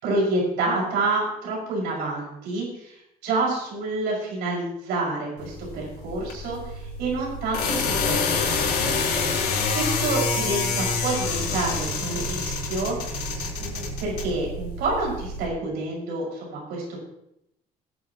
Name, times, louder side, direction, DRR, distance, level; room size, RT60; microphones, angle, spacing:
voice 1, 0.0-3.0 3.2-17.0, right 2 dB, 90° right, -3 dB, 5.7 m, -28 dB
sound 1, 5.4-15.5, left 4 dB, 70° left, 3.9 m, -27 dB
20.0 x 9.7 x 3.0 m, 0.79 s
cardioid pair, 110°, 17 cm